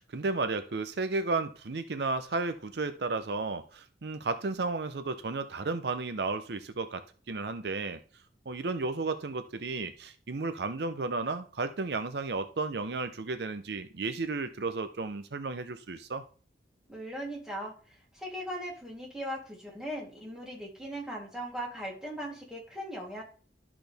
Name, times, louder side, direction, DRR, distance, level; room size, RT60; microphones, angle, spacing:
voice 1, 0.0-8.0 8.5-16.2, right 3 dB, 70° right, 10 dB, 0.6 m, -33 dB
voice 2, 16.9-23.2, equal, 5° right, -3 dB, 3.0 m, -39 dB
12.5 x 6.1 x 3.4 m, 0.42 s
head